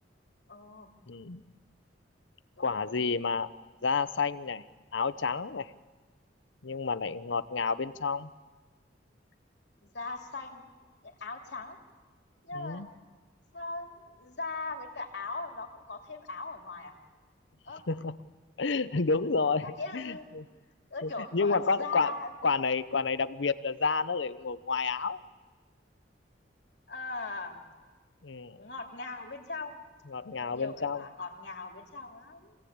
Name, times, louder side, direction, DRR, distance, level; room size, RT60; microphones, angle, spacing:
voice 1, 0.5-0.9 2.6-3.2 9.8-10.6 11.0-11.8 12.4-12.8 13.5-16.9 17.6-17.8 19.6-20.4 20.9-22.3 26.9-27.6 28.6-29.7 30.5-32.6, left 3 dB, 70° left, 2 dB, 2.7 m, -40 dB
voice 2, 1.1-1.4 2.6-3.5 3.8-4.6 4.9-5.7 6.6-8.3 12.5-12.9 17.9-18.2 18.6-19.7 19.9-20.4 21.0-25.2 28.2-28.6 30.1-31.0, left 4 dB, 90° left, 14 dB, 0.8 m, -30 dB
26.5 x 17.0 x 8.7 m, 1.4 s
head